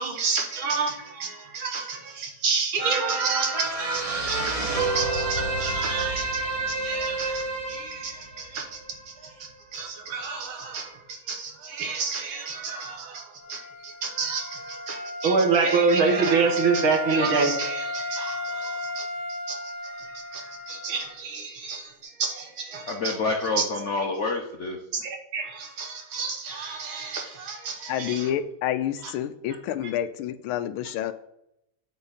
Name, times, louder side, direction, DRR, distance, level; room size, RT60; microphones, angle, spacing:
voice 1, 0.0-8.7 9.7-19.1 19.5-19.6 20.0-21.9 22.2-23.1 25.0-28.3, right 4 dB, 70° right, 2.0 m, -28 dB
sound 1, 2.8-9.4 9.8-9.9, right 3 dB, 20° right, 1.2 m, -29 dB
Wind instrument woodwind instrument, 13.4-21.2, left 2 dB, 25° left, 0.3 m, -34 dB
voice 2, 22.9-24.8, left 3 dB, 65° left, 0.7 m, -27 dB
voice 3, 27.9-31.1, left 10 dB, 85° left, 1.5 m, -29 dB
9.1 x 4.4 x 4.1 m
omnidirectional pair, 2.3 m